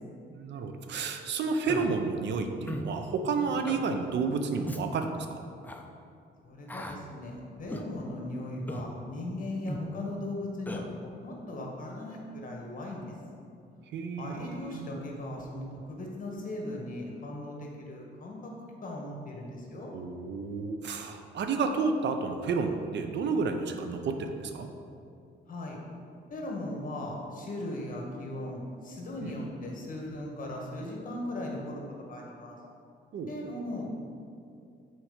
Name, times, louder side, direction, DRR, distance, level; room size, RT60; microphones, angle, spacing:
voice 1, 0.3-5.5 13.9-14.9 19.9-24.7 29.2-29.3 33.1-33.3, right 4 dB, 65° right, 6 dB, 0.6 m, -31 dB
Human voice, 1.7-1.9 2.7-2.9 3.7-3.8 4.7-4.8 5.6-5.8 6.7-7.0 7.7-7.9 8.7-8.9 9.7-9.9 10.7-10.8, left 1 dB, 10° left, 0.5 m, -37 dB
voice 2, 6.4-13.1 14.2-18.5 18.8-19.9 25.5-25.8 26.3-31.8 32.1-32.6 33.3-34.0, left 1 dB, 40° left, -1 dB, 1.6 m, -38 dB
6.3 x 4.6 x 5.0 m, 2.4 s
cardioid pair, 90°, 20 cm